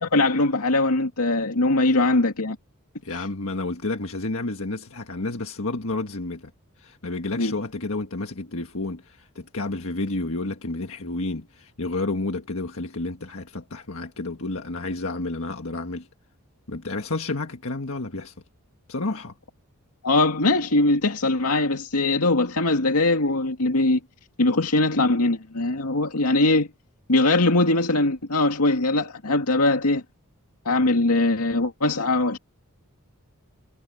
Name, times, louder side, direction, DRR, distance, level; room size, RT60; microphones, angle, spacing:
voice 1, 0.0-2.6 7.4-7.5 20.0-24.0 24.4-26.7 27.1-30.0 30.7-32.4, left 2 dB, 85° left, 2.3 m, -21 dB
voice 2, 3.0-6.5 6.8-16.1 16.7-18.3 18.9-19.3, left 2 dB, 65° left, 1.7 m, -30 dB
head